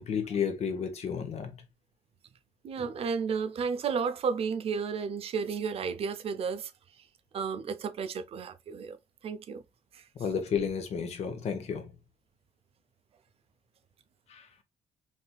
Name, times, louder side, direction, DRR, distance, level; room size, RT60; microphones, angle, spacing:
voice 1, 0.0-1.6 10.1-11.9 14.3-14.5, left 7 dB, 55° left, 0.8 m, -32 dB
voice 2, 2.6-6.7 7.3-9.0 9.2-9.6 9.9-10.1, right 6 dB, 50° right, 0.4 m, -32 dB
3.2 x 2.7 x 2.2 m
cardioid pair, 115°, 13 cm